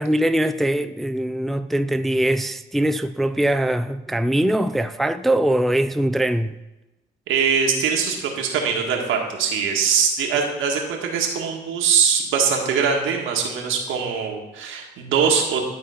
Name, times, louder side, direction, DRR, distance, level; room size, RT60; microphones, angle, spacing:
voice 1, 0.0-6.6, right 1 dB, ahead, 0.3 m, -22 dB
voice 2, 7.3-15.6, right 6 dB, 85° right, 1.7 m, -22 dB
12.0 x 4.1 x 5.6 m
cardioid pair, 90°, 20 cm